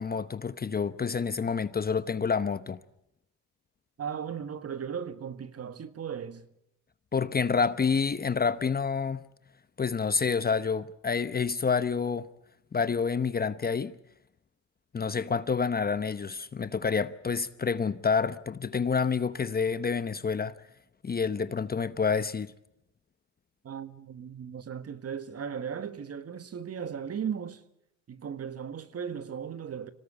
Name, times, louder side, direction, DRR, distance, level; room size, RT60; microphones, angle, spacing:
voice 1, 0.0-2.8 7.1-9.2 9.8-12.3 12.7-13.9 14.9-20.5 21.0-22.5, left 5 dB, 25° left, 0.9 m, -28 dB
voice 2, 4.0-6.5 23.6-27.6 28.1-29.9, right 7 dB, 40° right, 1.6 m, -37 dB
25.5 x 18.0 x 8.4 m
supercardioid pair, 85°, 37 cm